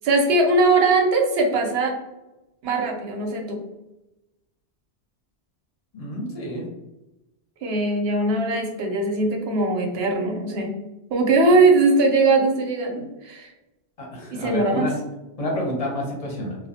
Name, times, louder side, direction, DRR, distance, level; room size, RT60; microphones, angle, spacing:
voice 1, 0.0-1.9 2.6-3.6 7.6-10.7 11.1-13.5 14.3-14.9, right 3 dB, 70° right, 2 dB, 0.8 m, -20 dB
voice 2, 5.9-6.6 14.0-14.9 15.4-16.6, left 1 dB, 40° left, -2 dB, 0.6 m, -29 dB
2.2 x 2.1 x 2.7 m, 0.99 s
omnidirectional pair, 1.1 m